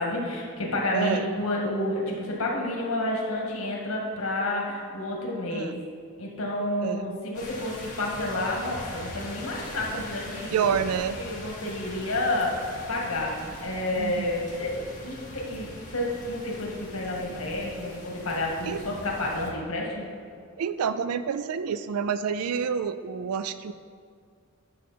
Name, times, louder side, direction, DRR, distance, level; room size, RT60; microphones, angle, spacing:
voice 1, 0.0-5.7 6.2-10.7 11.1-20.1, left 1 dB, 70° left, -2 dB, 1.8 m, -30 dB
voice 2, 0.9-1.2 5.5-5.8 6.8-7.2 10.5-11.2 14.0-14.3 18.7-18.8 20.6-23.7, right 7 dB, 90° right, 12 dB, 0.4 m, -28 dB
sound 1, 7.3-19.5, left 1 dB, 35° left, 2.0 m, -41 dB
10.5 x 6.4 x 4.3 m, 2.2 s
head